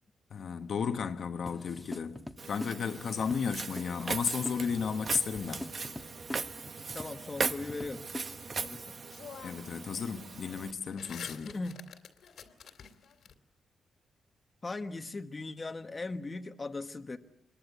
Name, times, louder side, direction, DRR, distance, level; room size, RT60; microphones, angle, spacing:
voice 1, 0.3-2.2 2.5-5.6 9.4-11.5, left 6 dB, 60° left, 1.2 m, -33 dB
sound 1, 1.5-8.8, left 1 dB, 5° left, 1.4 m, -44 dB
Walk footsteps, 2.4-10.7, right 4 dB, 40° right, 1.0 m, -39 dB
sound 2, 5.2-6.3 8.6-8.7 9.1-9.9 10.2-13.3, left 7 dB, 75° left, 2.6 m, -49 dB
voice 2, 6.9-8.1 8.6-9.0 11.4-11.8 14.6-17.2, left 3 dB, 25° left, 1.2 m, -39 dB
26.5 x 22.0 x 8.3 m
wide cardioid pair, 130°, 0 cm